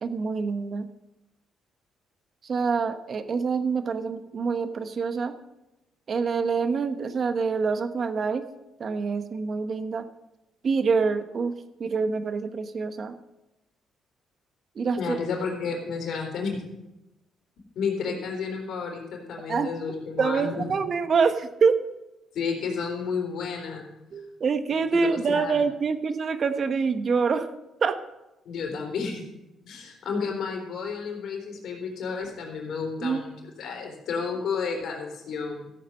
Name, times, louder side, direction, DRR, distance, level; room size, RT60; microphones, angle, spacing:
voice 1, 0.0-0.9 2.4-5.3 6.1-8.5 8.8-10.1 10.6-11.5 11.8-13.1 14.7-15.2 19.5-19.7 20.2-21.8 24.1-27.5 27.8-28.0 33.0-33.2, right 5 dB, 50° right, 9 dB, 1.0 m, -26 dB
voice 2, 15.0-16.7 17.8-20.7 22.3-23.9 24.9-25.6 28.5-29.2 29.6-33.3 33.6-35.7, left 5 dB, 70° left, 1 dB, 3.7 m, -31 dB
14.5 x 8.5 x 5.4 m, 0.96 s
cardioid pair, 90°, 0 cm